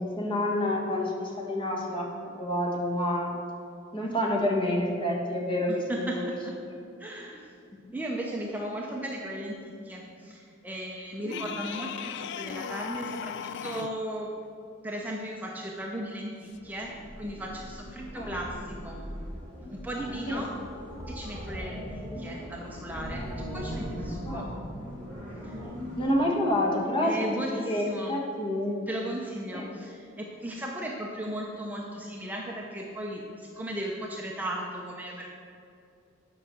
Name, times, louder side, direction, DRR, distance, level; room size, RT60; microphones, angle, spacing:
voice 1, 0.0-2.1 2.4-3.4 3.9-6.3 6.6-6.8 7.7-7.9 11.2-11.5 18.1-18.4 20.3-20.4 24.2-24.5 26.0-28.8 29.5-29.7, left 1 dB, 25° left, -1 dB, 1.5 m, -28 dB
voice 2, 5.7-6.5 7.0-7.4 7.9-13.3 13.6-14.3 14.8-19.0 19.7-20.5 21.1-24.5 25.4-25.6 27.0-28.2 28.9-35.3, right 1 dB, 10° right, -2 dB, 0.7 m, -36 dB
sound 1, 11.3-14.0 16.5-16.6, left 8 dB, 60° left, 0.3 m, -37 dB
sound 2, 16.6-26.1, equal, 10° left, 2.4 m, -39 dB
9.4 x 5.7 x 6.4 m, 2.5 s
head